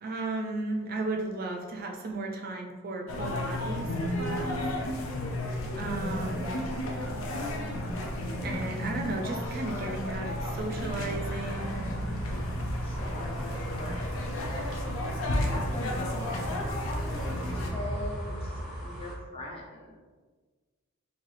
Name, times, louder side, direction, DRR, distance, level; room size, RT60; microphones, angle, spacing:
voice 1, 0.0-4.6 5.7-6.6 8.4-11.9, right 2 dB, 45° right, 2 dB, 0.4 m, -35 dB
sound 1, 3.1-17.7, left 1 dB, 70° left, 0.6 m, -33 dB
voice 2, 4.3-4.9 12.8-14.0 15.5-20.0, left 1 dB, 25° left, -2 dB, 0.7 m, -41 dB
sound 2, 11.1-19.1, equal, ahead, 1.2 m, -38 dB
4.1 x 2.7 x 3.3 m, 1.4 s
head